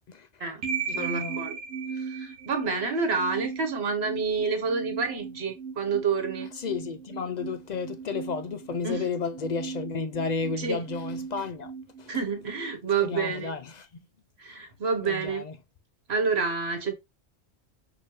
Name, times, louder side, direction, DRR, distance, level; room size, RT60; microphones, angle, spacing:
voice 1, 0.1-0.4 0.9-1.5 6.5-11.7 12.0-12.2 13.0-14.0 15.0-15.6, left 5 dB, 60° left, 0.5 m, -32 dB
sound 1, 0.6-12.7, right 6 dB, 90° right, 1.0 m, -37 dB
voice 2, 1.0-1.5 2.0-6.5 8.8-9.0 10.6-10.8 12.1-13.5 14.4-15.4 16.1-16.9, right 5 dB, 65° right, 1.4 m, -28 dB
6.3 x 2.8 x 3.0 m
omnidirectional pair, 1.2 m